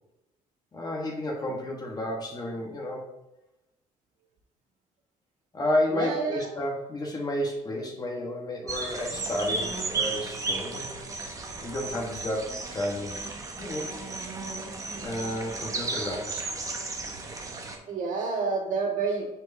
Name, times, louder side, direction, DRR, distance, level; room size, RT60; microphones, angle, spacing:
voice 1, 0.7-3.0 5.5-10.9 11.6-13.2 13.6-13.9 15.0-16.5, left 1 dB, 25° left, 0 dB, 1.1 m, -31 dB
voice 2, 5.9-6.5 17.9-19.3, right 4 dB, 65° right, -1 dB, 1.7 m, -28 dB
sound 1, 8.7-17.8, right 3 dB, 25° right, 0.8 m, -34 dB
10.0 x 4.6 x 2.6 m, 0.96 s
cardioid pair, 130°, 14 cm